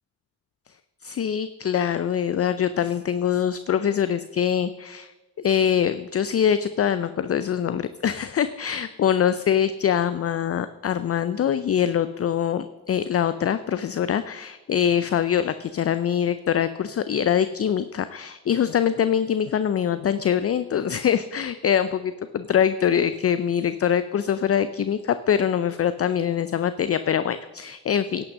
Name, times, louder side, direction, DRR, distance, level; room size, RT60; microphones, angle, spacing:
voice 1, 1.0-5.1 5.4-28.2, left 8 dB, 35° left, 13 dB, 0.5 m, -24 dB
11.0 x 6.4 x 6.2 m, 1.2 s
hypercardioid pair, 45°, 41 cm